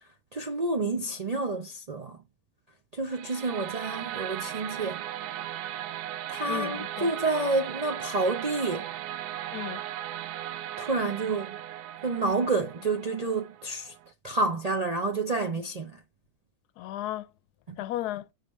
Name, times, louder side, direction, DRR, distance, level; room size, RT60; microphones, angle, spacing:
voice 1, 0.0-2.2 2.9-5.0 6.3-8.9 10.8-11.6 12.0-13.9 14.2-16.0 17.7-17.8, right 3 dB, 50° right, 0.4 m, -29 dB
sound 1, 3.1-14.1, right 12 dB, 85° right, 1.1 m, -37 dB
voice 2, 6.5-7.1 9.5-9.8 16.8-17.3 17.8-18.3, left 13 dB, 85° left, 1.1 m, -34 dB
6.5 x 4.9 x 3.0 m
omnidirectional pair, 1.6 m